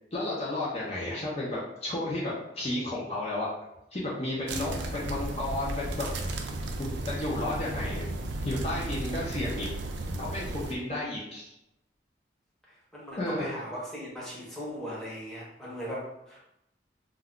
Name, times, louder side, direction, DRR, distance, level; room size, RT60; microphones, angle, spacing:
voice 1, 0.1-3.5 3.9-6.1 6.8-8.1 8.4-9.7 10.2-11.4 13.2-13.5, left 1 dB, 35° left, -6 dB, 0.5 m, -32 dB
sound 1, 4.5-10.7, right 2 dB, 85° right, 0.4 m, -34 dB
voice 2, 12.9-16.4, equal, 5° left, -7 dB, 0.7 m, -38 dB
2.3 x 2.2 x 3.6 m, 0.85 s
head